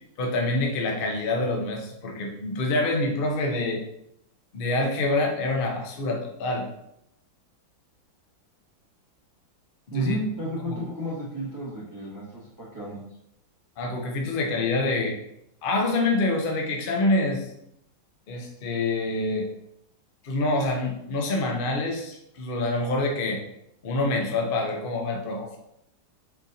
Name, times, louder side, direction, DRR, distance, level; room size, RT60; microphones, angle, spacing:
voice 1, 0.2-3.8 4.5-6.7 9.9-10.1 13.8-15.2 15.6-17.5 18.3-19.5 20.2-23.4 23.8-25.6, left 2 dB, 85° left, 1 dB, 0.4 m, -26 dB
voice 2, 9.9-13.0, right 1 dB, 20° right, -7 dB, 0.6 m, -32 dB
4.4 x 4.1 x 2.7 m, 0.79 s
omnidirectional pair, 2.1 m